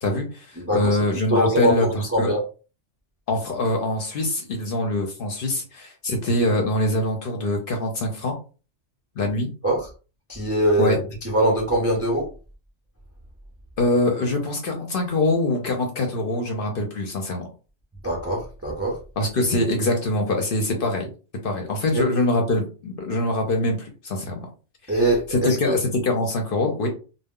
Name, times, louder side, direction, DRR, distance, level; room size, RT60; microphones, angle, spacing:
voice 1, 0.0-2.3 3.3-8.4 9.2-9.5 10.8-11.0 13.8-17.5 19.2-21.1 21.4-24.5 24.9-26.9, left 1 dB, 55° left, 3 dB, 0.7 m, -24 dB
voice 2, 0.6-0.9 1.3-2.4 9.6-9.8 10.3-11.0 11.3-12.3 18.0-19.0 21.9-22.0 24.9-25.7, right 1 dB, 20° right, -2 dB, 0.4 m, -22 dB
2.1 x 2.1 x 3.6 m, 0.35 s
omnidirectional pair, 1.2 m